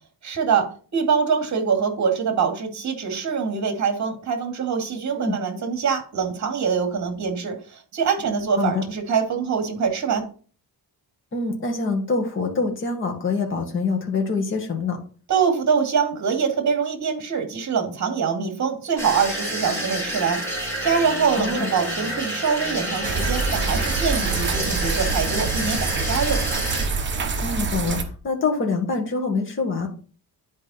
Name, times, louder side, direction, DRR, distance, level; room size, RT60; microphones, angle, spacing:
voice 1, 0.2-10.3 15.3-20.4 20.8-26.4, right 6 dB, 45° right, 4 dB, 2.3 m, -24 dB
voice 2, 11.3-15.0 21.3-21.7 27.4-29.9, left 4 dB, 30° left, 1 dB, 1.9 m, -25 dB
sound 1, 19.0-26.9, right 1 dB, 5° left, 3.7 m, -29 dB
sound 2, 23.0-28.0, right 4 dB, 30° right, 1.0 m, -26 dB
10.5 x 4.9 x 4.3 m, 0.40 s
cardioid pair, 160°, 38 cm